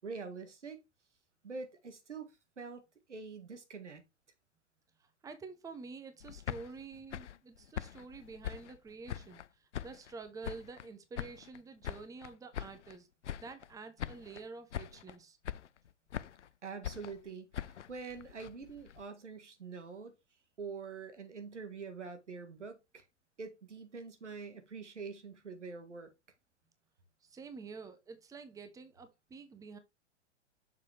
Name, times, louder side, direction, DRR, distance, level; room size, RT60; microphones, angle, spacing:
voice 1, 0.0-0.8 1.4-2.8 3.1-4.0 16.6-20.1 20.6-23.0 23.4-26.1, right 4 dB, 90° right, 1.8 m, -45 dB
voice 2, 5.0-13.1 13.4-15.4 27.2-29.8, right 4 dB, 10° right, 0.9 m, -48 dB
sound 1, 6.2-9.5 9.7-10.9 11.2-13.0 13.2-13.7 14.0-14.5 14.7-15.2 15.4-16.5 16.8-19.0, left 10 dB, 85° left, 0.5 m, -43 dB
6.6 x 5.1 x 3.3 m
hypercardioid pair, 110°, 34 cm